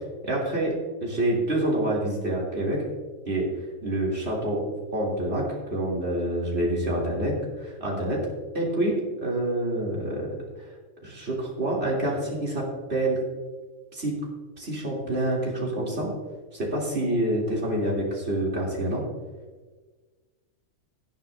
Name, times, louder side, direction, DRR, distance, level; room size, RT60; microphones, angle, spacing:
voice 1, 0.2-2.8 3.3-3.5 3.8-8.2 8.5-8.9 9.2-10.3 11.0-13.2 13.9-14.1 14.6-16.1 16.5-19.0, right 1 dB, 45° right, -4 dB, 3.3 m, -27 dB
18.0 x 9.1 x 2.7 m, 1.3 s
omnidirectional pair, 1.5 m